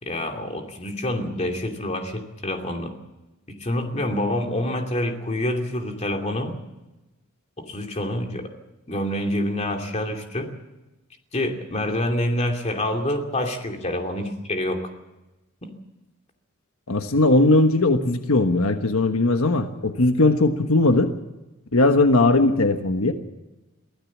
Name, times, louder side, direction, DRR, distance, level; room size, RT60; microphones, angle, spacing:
voice 1, 0.0-2.9 3.5-6.6 7.6-8.5 8.9-10.5 11.3-14.8, left 1 dB, 30° left, 4 dB, 2.6 m, -27 dB
voice 2, 16.9-21.1 21.7-23.1, left 2 dB, 80° left, 7 dB, 1.3 m, -19 dB
23.5 x 15.5 x 7.3 m, 1.0 s
head